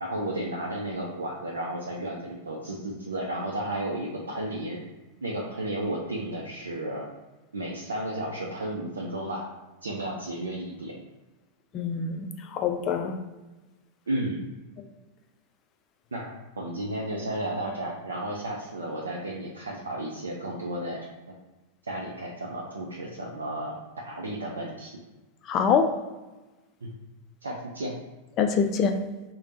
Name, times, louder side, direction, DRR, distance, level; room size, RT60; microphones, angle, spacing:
voice 1, 0.0-4.8 5.2-7.0 7.5-9.5 9.8-10.9 14.1-14.5 16.1-21.0 21.9-23.7 24.0-24.9 26.8-26.9 27.4-27.9, right 1 dB, 70° right, -2 dB, 0.4 m, -33 dB
voice 2, 11.7-13.2 25.5-25.9 28.4-29.0, left 6 dB, 35° left, 6 dB, 0.4 m, -25 dB
3.2 x 2.1 x 4.0 m, 1.1 s
figure-of-eight pair, 90°, 0 cm